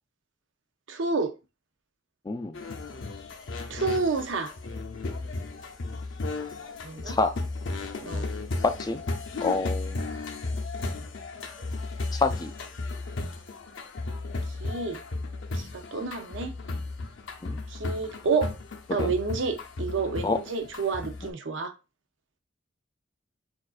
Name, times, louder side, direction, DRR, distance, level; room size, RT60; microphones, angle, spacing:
voice 1, 0.9-1.3 3.7-4.5 6.8-7.2 8.0-8.3 14.6-15.0 15.5-16.6 17.7-18.5 18.9-21.7, right 4 dB, 75° right, 0.6 m, -29 dB
voice 2, 2.3-2.6 7.1-7.3 8.6-9.0 9.4-10.0 12.1-12.5 17.4-17.6 19.0-19.1 20.2-20.4, left 3 dB, 20° left, 0.3 m, -27 dB
sound 1, 2.5-21.3, left 3 dB, 75° left, 0.6 m, -35 dB
6.2 x 2.5 x 2.4 m
head